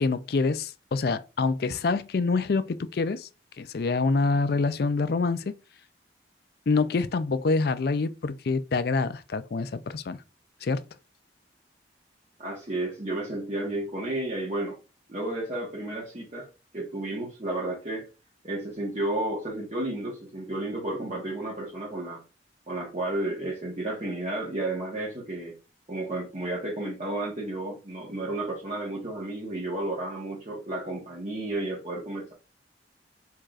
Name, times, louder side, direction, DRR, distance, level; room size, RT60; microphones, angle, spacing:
voice 1, 0.0-3.3 3.6-5.6 6.7-10.2 10.6-10.9, left 4 dB, 55° left, 0.4 m, -26 dB
voice 2, 12.4-14.8 15.1-18.1 18.4-22.2 22.7-25.6 25.9-32.3, right 1 dB, 40° right, 1.2 m, -32 dB
4.6 x 4.5 x 2.4 m
head